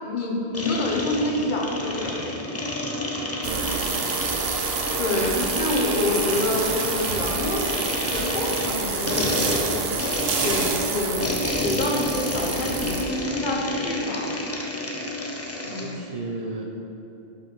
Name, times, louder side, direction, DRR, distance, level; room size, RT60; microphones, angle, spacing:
voice 1, 0.0-2.4 5.0-7.7 8.1-9.8 10.4-11.3 11.6-14.4 15.6-15.9, left 2 dB, 50° left, -1 dB, 1.0 m, -27 dB
sound 1, 0.5-15.9, left 1 dB, 25° left, 0.4 m, -30 dB
voice 2, 3.4-4.4 15.7-16.6, right 3 dB, 50° right, 0 dB, 0.5 m, -34 dB
sound 2, 3.4-13.0, right 5 dB, 75° right, 0.9 m, -28 dB
5.0 x 4.4 x 6.0 m, 2.9 s
omnidirectional pair, 1.0 m